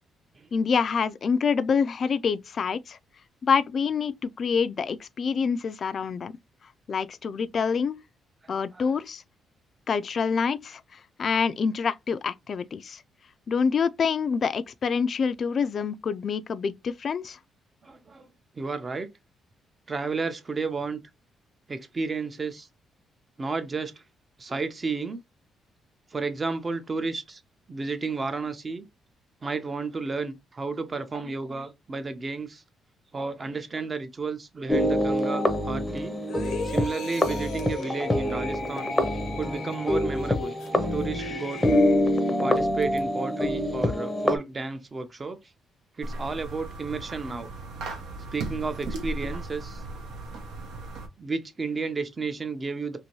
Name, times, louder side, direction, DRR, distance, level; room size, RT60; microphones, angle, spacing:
voice 1, 0.5-3.0 3.4-6.3 6.9-8.0 8.5-9.2 9.9-13.0 13.5-17.4, left 6 dB, 50° left, 0.3 m, -26 dB
voice 2, 8.4-8.9 17.8-18.3 18.6-19.1 19.9-21.0 21.7-22.7 23.4-23.9 24.4-25.2 26.1-27.4 27.7-28.9 29.4-32.6 33.1-36.2 36.6-38.9 39.4-40.6 40.9-41.6 42.4-45.4 46.0-47.5 48.3-49.8 51.2-53.0, right 4 dB, 30° right, 0.6 m, -32 dB
sound 1, 34.7-44.4, left 1 dB, 10° left, 0.6 m, -26 dB
sound 2, 36.3-42.4 42.8-43.0, left 6 dB, 80° left, 0.6 m, -40 dB
sound 3, 46.0-51.1, right 2 dB, 90° right, 0.9 m, -36 dB
2.7 x 2.6 x 2.9 m
cardioid pair, 100°, 0 cm